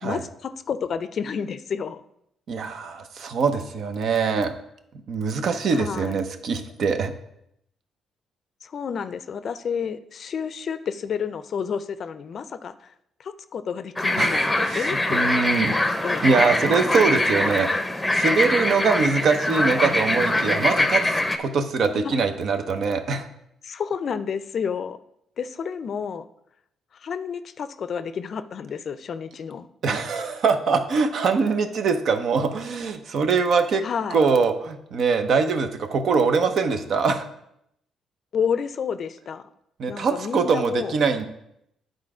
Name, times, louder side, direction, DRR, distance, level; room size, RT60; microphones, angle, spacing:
voice 1, 0.0-2.0 5.7-6.2 8.6-12.9 13.2-15.2 15.6-16.3 22.0-22.2 23.6-25.0 25.4-26.3 26.9-29.7 33.8-34.2 38.3-39.4 39.9-41.0, left 7 dB, 55° left, 12 dB, 0.4 m, -30 dB
voice 2, 2.5-4.5 5.1-7.1 14.2-15.7 16.2-17.7 18.1-23.3 29.8-33.8 34.1-37.3 39.8-41.2, right 5 dB, 60° right, 8 dB, 0.8 m, -23 dB
sound 1, 14.0-21.4, left 1 dB, 10° left, 0.7 m, -23 dB
9.9 x 3.9 x 4.9 m, 0.77 s
cardioid pair, 90°, 0 cm